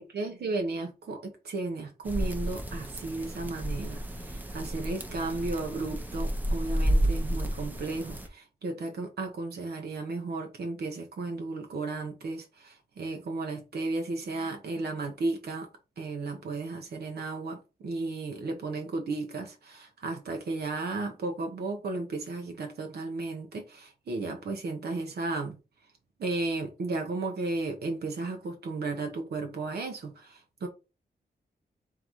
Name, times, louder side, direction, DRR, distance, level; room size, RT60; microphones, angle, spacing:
voice 1, 0.0-15.7 16.0-25.6 26.2-30.7, right 3 dB, 75° right, 0.9 m, -34 dB
sound 1, 2.0-8.3, equal, 10° right, 0.7 m, -31 dB
3.9 x 3.8 x 3.0 m
wide cardioid pair, 130°, 17 cm